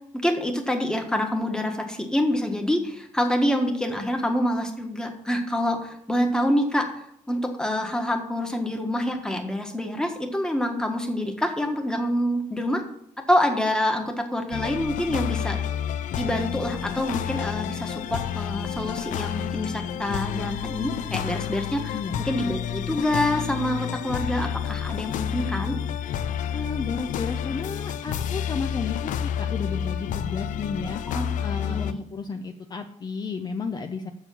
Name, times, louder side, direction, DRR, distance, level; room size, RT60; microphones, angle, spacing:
voice 1, 0.1-7.0 7.3-12.8 13.3-15.6 16.2-25.8 31.1-31.3 31.7-32.0, left 1 dB, 5° left, 3 dB, 1.5 m, -26 dB
sound 1, 14.5-31.9, left 9 dB, 80° left, 0.5 m, -30 dB
voice 2, 26.5-31.0 31.4-34.1, left 4 dB, 35° left, 5 dB, 0.6 m, -32 dB
7.2 x 7.0 x 7.0 m, 0.72 s
cardioid pair, 135°, 13 cm